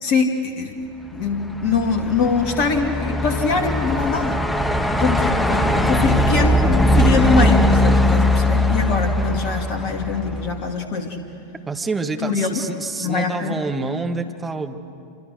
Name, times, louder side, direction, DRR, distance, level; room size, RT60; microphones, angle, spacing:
voice 1, 0.0-0.7 1.1-4.4 5.0-11.2 12.2-12.6 13.0-13.6, left 5 dB, 45° left, 5 dB, 2.4 m, -23 dB
Truck, 1.3-10.6, left 1 dB, 10° left, 1.4 m, -20 dB
voice 2, 11.6-14.8, right 3 dB, 10° right, 5 dB, 1.6 m, -27 dB
27.0 x 25.5 x 6.6 m, 2.5 s
figure-of-eight pair, 90°, 0 cm